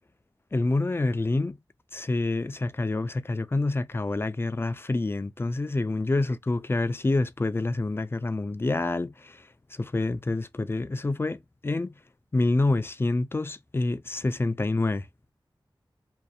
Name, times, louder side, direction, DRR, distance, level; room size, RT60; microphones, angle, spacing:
voice 1, 0.5-1.6 1.9-9.4 9.8-11.9 12.3-15.1, left 2 dB, 25° left, 0.3 m, -27 dB
2.6 x 2.5 x 2.3 m
wide cardioid pair, 55°, 9 cm